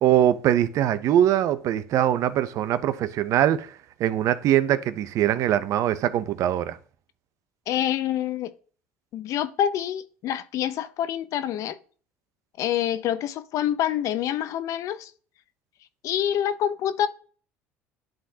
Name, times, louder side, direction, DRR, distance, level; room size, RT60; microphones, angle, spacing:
voice 1, 0.0-6.8, right 11 dB, 60° right, 0.6 m, -22 dB
voice 2, 7.7-8.5 9.1-11.8 12.6-15.1 16.0-17.1, left 10 dB, 60° left, 0.6 m, -26 dB
11.0 x 3.8 x 2.8 m
supercardioid pair, 80°, 6 cm